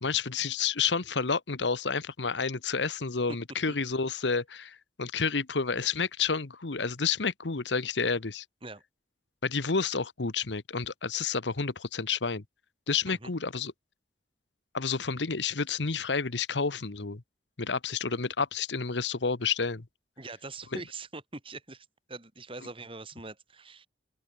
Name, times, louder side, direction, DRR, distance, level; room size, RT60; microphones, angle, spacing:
voice 1, 0.0-8.4 9.4-12.4 12.9-13.7 14.7-17.2 17.6-19.9 20.7-20.8, left 5 dB, 80° left, 1.2 m, -30 dB
voice 2, 20.2-23.9, right 3 dB, 30° right, 3.6 m, -43 dB
open air
head